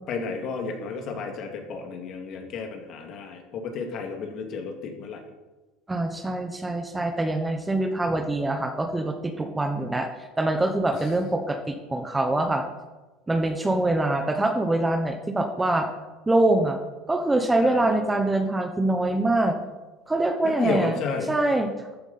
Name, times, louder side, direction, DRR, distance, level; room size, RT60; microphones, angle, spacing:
voice 1, 0.1-5.2 10.9-11.1 17.6-18.0 20.4-21.3, left 5 dB, 45° left, 4 dB, 2.1 m, -32 dB
voice 2, 5.9-10.1 10.4-12.7 13.3-15.9 16.3-16.8 17.1-19.6 20.1-20.9 21.3-21.9, right 2 dB, 10° right, 5 dB, 0.9 m, -24 dB
14.0 x 9.4 x 4.2 m, 1.2 s
supercardioid pair, 140°, 0 cm